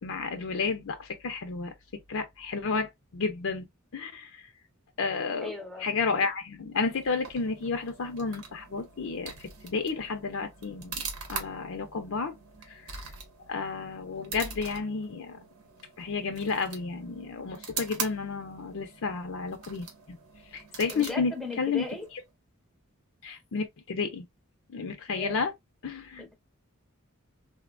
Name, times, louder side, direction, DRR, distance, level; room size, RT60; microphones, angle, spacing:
voice 1, 0.0-3.7 3.9-4.5 5.0-5.5 5.8-9.3 9.6-11.0 11.3-12.4 12.7-12.9 13.5-15.4 16.0-20.2 20.5-21.8 23.2-24.3 24.7-25.5 25.8-26.2, left 4 dB, 65° left, 0.5 m, -31 dB
voice 2, 5.4-5.9 20.9-22.1 25.1-25.4 26.2-26.3, left 2 dB, ahead, 0.7 m, -37 dB
sound 1, 6.7-22.3, right 5 dB, 90° right, 1.0 m, -43 dB
3.6 x 2.1 x 2.3 m
head